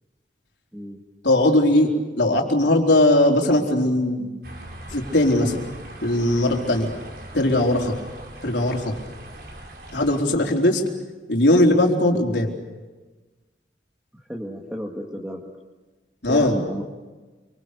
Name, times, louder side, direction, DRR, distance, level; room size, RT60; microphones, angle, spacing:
voice 1, 1.2-1.9 2.2-4.3 4.9-5.6 6.0-6.9 7.3-7.9 8.4-8.9 9.9-10.8 11.3-12.5 16.2-16.5, left 1 dB, 80° left, 1 dB, 4.2 m, -19 dB
sound 1, 4.4-10.2, right 1 dB, 60° right, 5.1 m, -40 dB
voice 2, 14.1-15.4 16.3-16.8, equal, 5° right, -1 dB, 2.1 m, -32 dB
28.0 x 26.0 x 6.8 m, 1.2 s
head